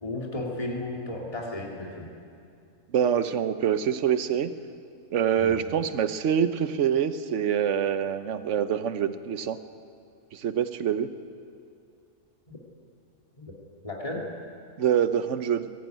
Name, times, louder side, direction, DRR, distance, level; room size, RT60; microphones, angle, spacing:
voice 1, 0.0-2.1 5.4-5.5 12.5-12.6 13.4-13.5 13.8-14.3, left 2 dB, 20° left, -2 dB, 2.7 m, -34 dB
voice 2, 2.9-4.5 5.1-9.6 10.3-11.1 14.8-15.7, right 8 dB, 60° right, 11 dB, 1.1 m, -25 dB
20.0 x 17.5 x 9.2 m, 2.4 s
omnidirectional pair, 1.5 m